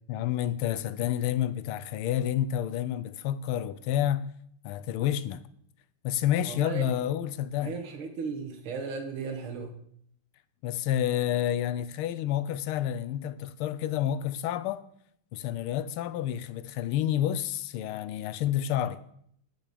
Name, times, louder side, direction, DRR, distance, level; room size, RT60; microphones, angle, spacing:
voice 1, 0.1-4.3 4.6-5.4 6.0-7.8 10.6-14.8 15.3-19.0, left 11 dB, 85° left, 1.5 m, -29 dB
voice 2, 6.4-6.9 7.6-9.8, right 5 dB, 75° right, 2.2 m, -36 dB
16.0 x 6.3 x 5.0 m
omnidirectional pair, 2.3 m